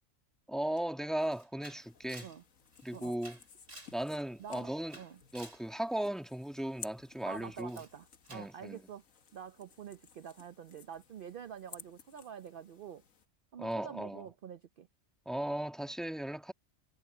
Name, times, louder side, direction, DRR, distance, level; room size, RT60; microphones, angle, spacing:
voice 1, 0.5-2.3 2.8-3.4 3.9-5.0 5.3-7.8 8.3-8.8 13.6-14.2 15.2-16.5, right 1 dB, ahead, 1.5 m, -36 dB
Camera, 0.8-0.9 1.2-4.0 4.4-5.7 7.6-7.9 8.2-8.5, right 1 dB, 70° right, 6.2 m, -54 dB
sound 1, 1.7-13.3, left 6 dB, 80° left, 1.7 m, -56 dB
voice 2, 4.4-5.2 7.2-9.0 9.3-13.0 13.5-14.9, right 8 dB, 55° right, 0.7 m, -47 dB
omnidirectional pair, 1.4 m